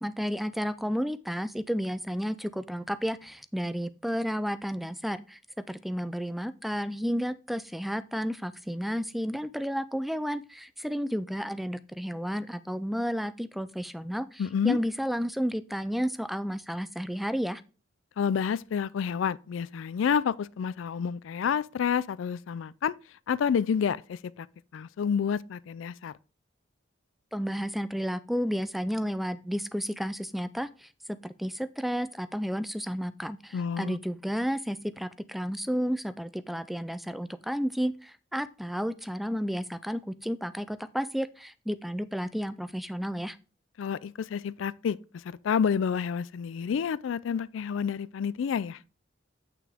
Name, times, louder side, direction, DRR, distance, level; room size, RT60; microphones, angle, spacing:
voice 1, 0.0-5.4 5.7-17.6 27.3-30.9 31.2-43.4, equal, ahead, 0.4 m, -32 dB
voice 2, 14.4-14.8 18.2-22.9 23.3-24.5 24.7-26.1 33.5-34.0 43.8-48.8, left 7 dB, 85° left, 0.3 m, -29 dB
8.6 x 5.9 x 3.5 m
head